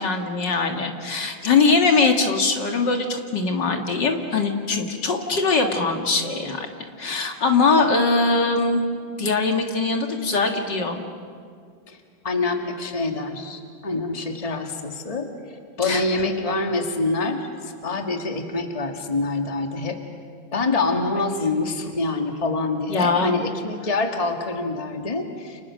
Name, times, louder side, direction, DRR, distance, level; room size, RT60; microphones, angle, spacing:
voice 1, 0.0-6.7 7.0-8.8 9.2-11.0 15.8-16.0 21.1-21.2 22.9-23.3, left 4 dB, 60° left, 3 dB, 2.5 m, -21 dB
voice 2, 12.2-15.3 15.8-20.0 20.5-25.6, left 3 dB, 20° left, 4 dB, 1.8 m, -26 dB
30.0 x 29.5 x 6.4 m, 2.2 s
omnidirectional pair, 2.2 m